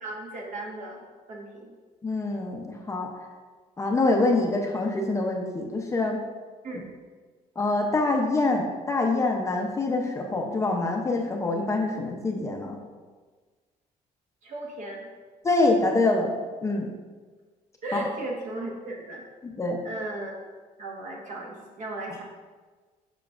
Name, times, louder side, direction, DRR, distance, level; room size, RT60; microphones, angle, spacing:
voice 1, 0.0-1.0 1.3-1.7 6.6-6.9 14.4-15.1 17.8-19.2 19.8-20.4 20.8-22.2, right 2 dB, 55° right, -1 dB, 1.3 m, -36 dB
voice 2, 2.0-3.1 3.8-6.2 7.6-12.8 15.4-16.3 16.6-16.9 17.9-18.1 19.4-19.8, left 2 dB, 20° left, 1 dB, 0.6 m, -25 dB
7.1 x 5.7 x 2.4 m, 1.4 s
cardioid pair, 145°, 15 cm